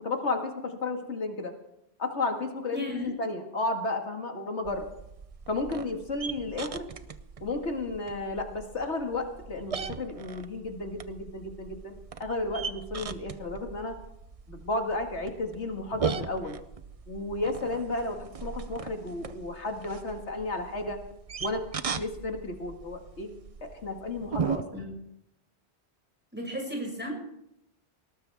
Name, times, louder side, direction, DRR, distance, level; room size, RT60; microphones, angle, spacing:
voice 1, 0.0-1.5 2.0-4.9 5.5-6.9 7.4-14.0 14.5-16.6 17.1-21.0 21.4-23.3 23.6-24.6, left 2 dB, 90° left, 3 dB, 2.3 m, -33 dB
voice 2, 2.7-3.1 24.7-24.9 26.3-27.1, left 1 dB, 10° right, -1 dB, 6.7 m, -34 dB
sound 1, 4.6-24.6, right 6 dB, 40° right, 0.7 m, -39 dB
20.5 x 18.5 x 3.5 m, 0.80 s
omnidirectional pair, 1.1 m